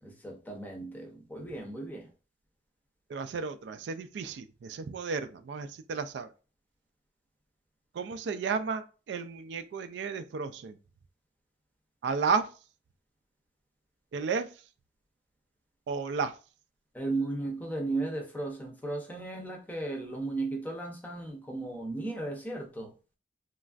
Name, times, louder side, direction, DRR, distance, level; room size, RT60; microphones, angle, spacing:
voice 1, 0.0-2.1 16.9-22.9, right 2 dB, 10° left, 0.5 m, -35 dB
voice 2, 3.1-6.3 7.9-10.8 12.0-12.5 14.1-14.5 15.9-16.4, right 5 dB, 80° right, 0.3 m, -33 dB
3.1 x 2.4 x 2.4 m
head